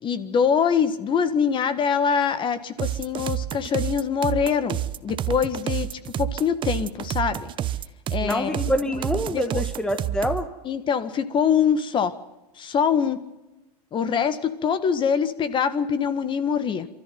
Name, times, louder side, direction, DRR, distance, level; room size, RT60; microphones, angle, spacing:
voice 1, 0.0-7.5 8.1-8.6 9.0-9.6 10.6-12.2 12.6-13.2 13.9-16.9, left 7 dB, 25° left, 13 dB, 1.6 m, -24 dB
sound 1, 2.8-10.5, right 12 dB, 25° right, 0.8 m, -29 dB
voice 2, 8.2-10.5, equal, 5° left, 9 dB, 1.2 m, -26 dB
27.5 x 13.5 x 9.4 m, 1.0 s
hypercardioid pair, 125°, 20 cm